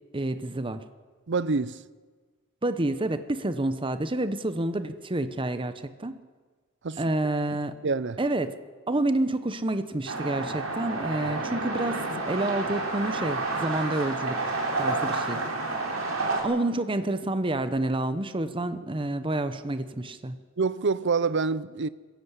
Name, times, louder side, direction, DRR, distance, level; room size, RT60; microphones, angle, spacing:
voice 1, 0.1-0.8 2.6-6.2 7.0-7.7 8.2-8.6 8.9-14.5 14.8-15.4 16.4-20.4, right 2 dB, 25° right, 0.9 m, -29 dB
voice 2, 1.3-1.8 6.8-7.0 7.8-8.2 20.6-21.9, right 4 dB, 60° right, 0.7 m, -26 dB
sound 1, 10.1-16.4, right 3 dB, 90° right, 4.3 m, -30 dB
20.5 x 16.5 x 8.3 m
head